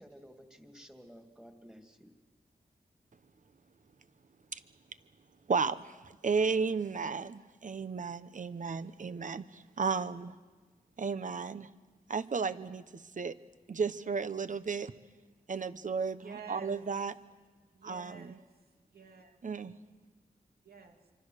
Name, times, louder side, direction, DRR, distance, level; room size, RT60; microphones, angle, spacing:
voice 1, 0.0-2.1, equal, 5° right, 4 dB, 2.7 m, -53 dB
voice 2, 5.5-10.4 11.0-11.7 12.1-13.3 13.7-14.9 15.5-17.1 17.8-18.3 19.4-19.7, right 5 dB, 55° right, 13 dB, 1.0 m, -34 dB
voice 3, 16.2-16.9 17.7-18.6 18.9-19.4 20.6-21.0, right 5 dB, 80° right, 3 dB, 2.8 m, -49 dB
26.5 x 24.5 x 6.6 m, 1.3 s
wide cardioid pair, 85°, 16 cm